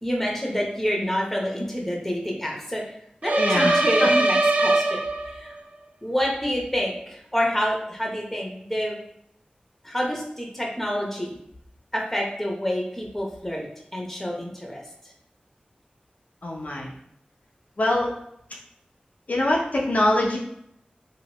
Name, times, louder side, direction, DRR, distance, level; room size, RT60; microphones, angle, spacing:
voice 1, 0.0-2.9 3.2-5.5 6.0-9.0 9.8-11.3 11.9-13.6 13.9-14.8, equal, 5° left, -1 dB, 0.8 m, -28 dB
sound 1, 3.2-5.6, right 2 dB, 55° right, 0.3 m, -21 dB
voice 2, 3.4-4.1 16.4-16.9 17.8-18.1 19.3-20.4, left 1 dB, 55° left, -1 dB, 0.5 m, -23 dB
2.9 x 2.6 x 2.9 m, 0.73 s
wide cardioid pair, 80°, 3 cm